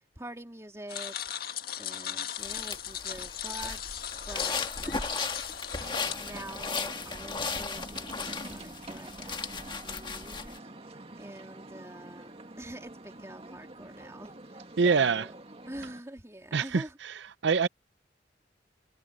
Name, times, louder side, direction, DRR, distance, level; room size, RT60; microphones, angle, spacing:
voice 1, 0.1-1.3 1.8-5.3 6.2-10.7 11.2-15.3 15.7-17.0, right 1 dB, 15° right, 3.1 m, -46 dB
sound 1, 0.9-6.1, left 10 dB, 55° left, 1.9 m, -37 dB
sound 2, 2.4-10.6, left 4 dB, 25° left, 1.5 m, -36 dB
sound 3, 5.8-16.0, right 2 dB, 35° right, 2.1 m, -46 dB
voice 2, 14.8-15.3 16.5-17.1 17.4-17.7, right 5 dB, 75° right, 0.6 m, -25 dB
head